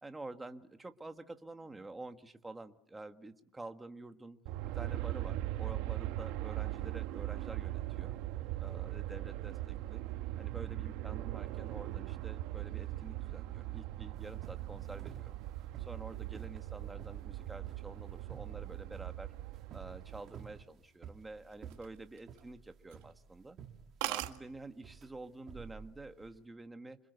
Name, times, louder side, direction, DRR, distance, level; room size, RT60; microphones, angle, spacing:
voice 1, 0.0-4.4 4.7-8.1 8.6-10.0 10.4-15.3 15.8-19.3 19.7-23.6 24.0-27.0, right 2 dB, 10° right, 7 dB, 1.4 m, -49 dB
Aircraft, 4.5-20.6, right 15 dB, 60° right, 1.3 m, -40 dB
sound 1, 14.1-26.4, right 8 dB, 30° right, 2.2 m, -52 dB
sound 2, 21.5-22.5 22.9-23.1 23.5-23.6 23.7-23.8 24.0-24.4 25.3-25.6 25.9-26.4, right 18 dB, 75° right, 1.9 m, -39 dB
27.0 x 26.5 x 8.1 m, 0.78 s
cardioid pair, 160°, 0 cm